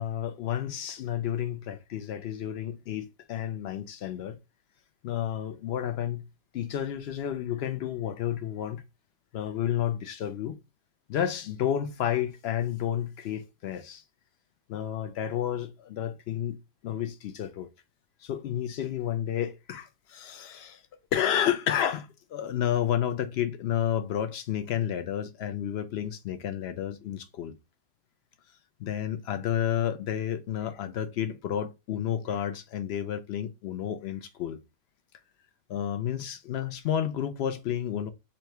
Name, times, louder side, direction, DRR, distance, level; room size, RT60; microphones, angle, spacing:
voice 1, 0.0-4.4 5.0-6.2 6.5-8.8 9.3-10.6 11.1-14.0 14.7-16.6 16.8-17.7 18.2-20.8 21.1-27.6 28.8-34.6 35.7-38.1, left 10 dB, 65° left, 0.6 m, -31 dB
3.0 x 2.7 x 4.5 m
omnidirectional pair, 1.5 m